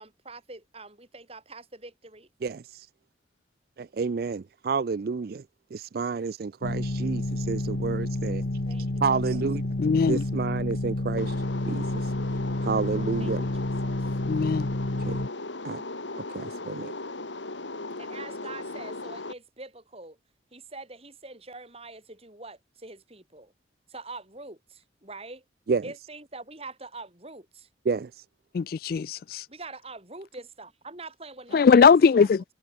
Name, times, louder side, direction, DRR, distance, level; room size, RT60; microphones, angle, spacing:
voice 1, 0.0-2.3 8.7-9.0 13.2-13.5 13.8-14.1 18.0-20.2 20.5-23.5 23.9-25.4 25.8-27.7 29.5-32.3, right 3 dB, 35° right, 5.3 m, -44 dB
voice 2, 2.4-2.9 3.8-5.4 5.7-8.5 9.0-9.6 10.1-11.4 11.7-12.1 12.6-13.5 15.0-15.2 15.6-15.8 16.2-16.9 25.7-25.8 27.9-28.2, right 5 dB, 55° right, 0.4 m, -30 dB
sound 1, 6.6-15.3, left 1 dB, 75° left, 1.3 m, -30 dB
voice 3, 9.8-10.2 14.2-14.7 28.5-29.4 31.5-32.4, left 5 dB, 55° left, 0.3 m, -20 dB
sound 2, 11.2-19.3, left 2 dB, 90° left, 2.7 m, -37 dB
head